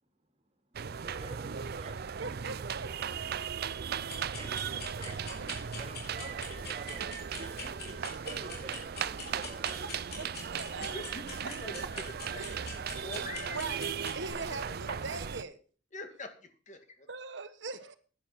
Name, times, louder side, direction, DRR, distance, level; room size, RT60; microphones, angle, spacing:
sound 1, 0.7-15.4, right 7 dB, 55° right, 0.5 m, -37 dB
voice 1, 1.0-2.2 4.2-5.4 5.8-7.1 7.4-9.9 11.7-11.8, right 2 dB, 35° right, 5 dB, 2.6 m, -49 dB
voice 2, 2.2-4.4 5.1-5.5 10.2-11.0 12.4-12.8 13.1-15.6 17.1-17.9, right 4 dB, 75° right, 10 dB, 1.2 m, -42 dB
sound 2, 3.9-14.3, left 4 dB, 60° left, 3.9 m, -46 dB
voice 3, 10.8-12.0 12.3-12.4 13.0-13.7 14.3-15.0 15.9-17.1, left 2 dB, 40° left, 7 dB, 2.1 m, -44 dB
10.5 x 10.5 x 5.8 m, 0.39 s
head